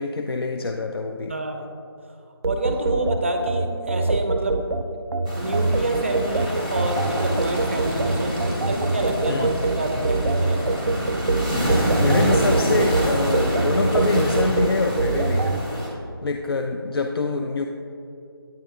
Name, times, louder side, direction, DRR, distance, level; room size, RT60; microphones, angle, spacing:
voice 1, 0.0-1.3 9.3-9.5 11.6-15.6 16.2-17.7, left 3 dB, 70° left, 4 dB, 0.4 m, -25 dB
voice 2, 1.3-1.7 2.5-4.7 5.3-8.3 8.7-9.5 9.8-10.6, right 1 dB, 30° right, 5 dB, 0.5 m, -27 dB
sound 1, 2.4-15.6, right 3 dB, 85° right, 0.4 m, -24 dB
sound 2, 5.2-15.9, equal, 15° left, 0.8 m, -26 dB
9.0 x 3.4 x 3.4 m, 2.5 s
figure-of-eight pair, 165°, 13 cm